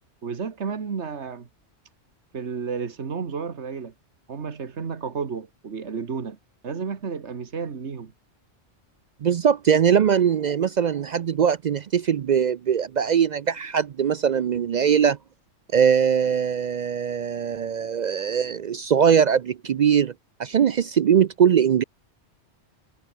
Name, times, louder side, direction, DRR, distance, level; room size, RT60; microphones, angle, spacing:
voice 1, 0.2-1.5 2.3-3.9 4.3-6.4 6.6-8.1, right 5 dB, 80° right, 1.9 m, -32 dB
voice 2, 9.2-15.2 15.7-20.1 20.4-21.8, right 8 dB, 55° right, 0.5 m, -21 dB
omnidirectional pair, 1.1 m